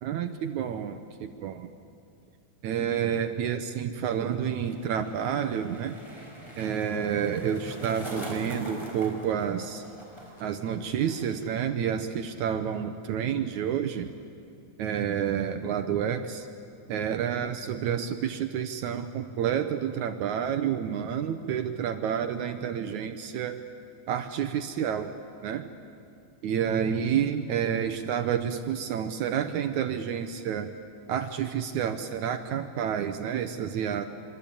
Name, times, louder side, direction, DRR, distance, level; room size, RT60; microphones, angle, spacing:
voice 1, 0.0-1.7 2.6-6.0 6.6-9.8 10.4-14.1 14.8-16.5 16.9-23.6 24.1-25.1 25.4-25.7 26.4-30.7 31.1-34.1, right 8 dB, 70° right, 8 dB, 2.1 m, -29 dB
Skateboard, 4.4-11.6 11.9-12.4, equal, 10° left, 4.7 m, -43 dB
25.5 x 24.5 x 8.7 m, 2.5 s
omnidirectional pair, 3.8 m